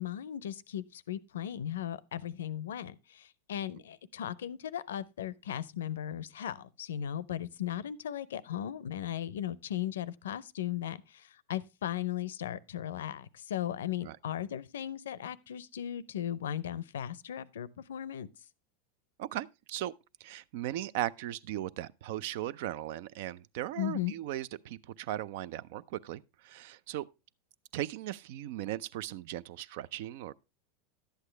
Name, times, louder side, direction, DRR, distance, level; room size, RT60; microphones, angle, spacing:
voice 1, 0.0-18.3 23.8-24.2, left 11 dB, 90° left, 0.5 m, -37 dB
voice 2, 19.2-19.9 20.2-27.1 27.7-30.3, right 13 dB, 70° right, 0.4 m, -37 dB
11.5 x 8.1 x 3.2 m
supercardioid pair, 115°, 0 cm